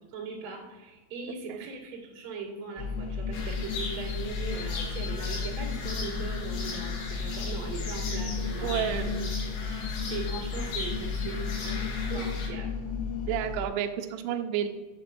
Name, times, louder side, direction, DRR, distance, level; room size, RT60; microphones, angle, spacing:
voice 1, 0.1-9.5 10.1-12.7, right 4 dB, 50° right, -5 dB, 2.1 m, -40 dB
sound 1, 2.8-13.7, left 5 dB, 85° left, 3.1 m, -33 dB
sound 2, 3.3-12.5, left 2 dB, 70° left, 3.1 m, -38 dB
voice 2, 8.6-9.1 12.1-12.3 13.3-14.7, right 10 dB, 80° right, 6 dB, 2.7 m, -31 dB
8.1 x 7.3 x 2.6 m, 1.3 s
omnidirectional pair, 5.7 m